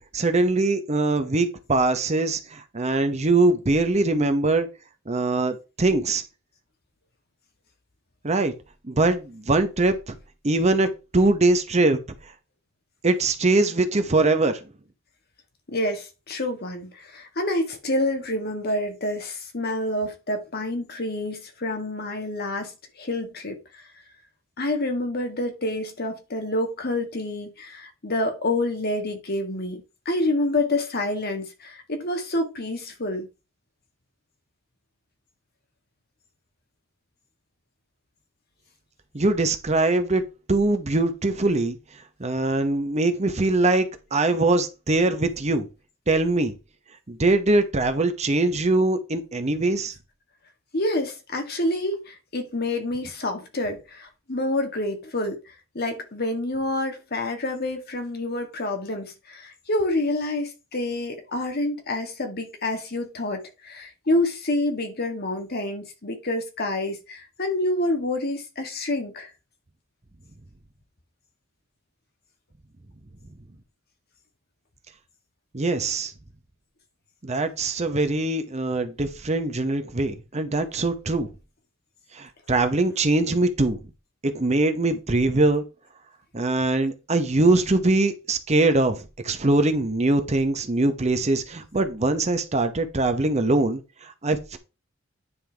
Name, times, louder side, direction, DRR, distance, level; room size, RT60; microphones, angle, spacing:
voice 1, 0.1-4.7 5.1-6.2 8.2-8.5 8.8-10.2 10.4-10.9 11.1-12.0 13.0-14.6 39.1-40.2 40.5-41.8 42.2-45.7 46.1-46.5 47.1-49.9 75.5-76.1 77.2-81.3 82.1-83.8 84.2-85.6 86.3-94.6, right 2 dB, 35° right, 0.9 m, -22 dB
voice 2, 15.7-23.9 24.6-33.3 50.7-69.3, left 1 dB, 50° left, 1.6 m, -28 dB
9.7 x 5.5 x 3.4 m
head